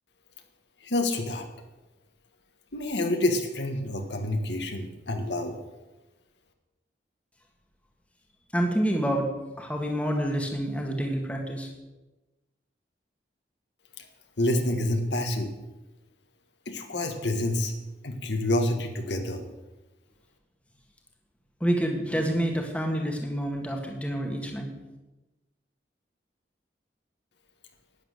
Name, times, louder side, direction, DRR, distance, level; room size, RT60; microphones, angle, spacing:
voice 1, 0.8-1.5 2.7-5.6 14.0-14.1 14.4-15.5 16.6-17.7 18.0-19.4, left 1 dB, 80° left, 5 dB, 1.7 m, -28 dB
voice 2, 8.5-9.3 9.6-11.7 21.6-24.7, equal, 5° left, 2 dB, 1.7 m, -28 dB
12.0 x 9.9 x 6.8 m, 1.1 s
head